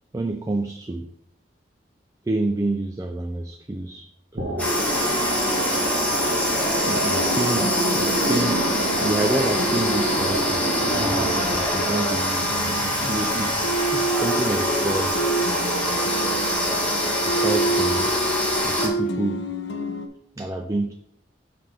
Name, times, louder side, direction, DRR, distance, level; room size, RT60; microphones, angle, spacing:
voice 1, 0.1-1.1 2.3-4.1 4.3-4.7 6.8-10.7 11.5-15.4 17.3-18.1 18.6-19.5 20.4-20.9, right 2 dB, 15° right, 5 dB, 0.3 m, -28 dB
sound 1, 4.4-11.6, right 1 dB, 85° right, 1.2 m, -27 dB
sound 2, 4.6-18.9, equal, 10° left, 1.1 m, -24 dB
sound 3, 7.2-11.2 11.7-20.1, right 2 dB, 70° left, 0.6 m, -29 dB
5.7 x 3.3 x 5.8 m, 0.71 s
head